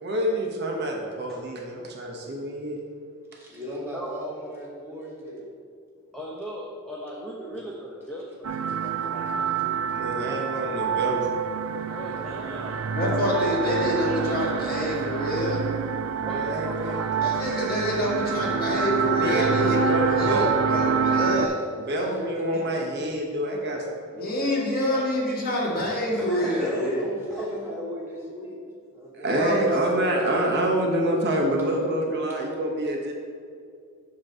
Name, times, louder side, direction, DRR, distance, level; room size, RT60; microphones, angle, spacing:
voice 1, 0.0-2.8 9.9-11.3 16.1-17.0 19.1-19.4 19.9-20.9 21.9-23.8 24.1-24.5 29.1-33.1, right 1 dB, 50° right, 0 dB, 1.0 m, -27 dB
voice 2, 3.3-5.4 21.9-22.3 26.3-28.6 28.9-29.4 29.8-29.9, equal, 10° right, -6 dB, 1.8 m, -36 dB
voice 3, 6.1-9.7 10.0-10.4 10.9-11.0 11.9-14.2 14.5-14.9 15.1-15.3 16.2-17.5 24.9-25.1 26.2-26.9 27.3-27.5, equal, 5° left, -4 dB, 0.7 m, -38 dB
sound 1, 8.4-21.5, right 6 dB, 75° right, 0.4 m, -27 dB
voice 4, 12.9-15.6 17.2-21.7 22.0-22.1 22.5-22.6 24.1-27.0 29.3-29.7, left 1 dB, 45° left, -4 dB, 1.6 m, -27 dB
7.8 x 3.1 x 6.2 m, 2.3 s
head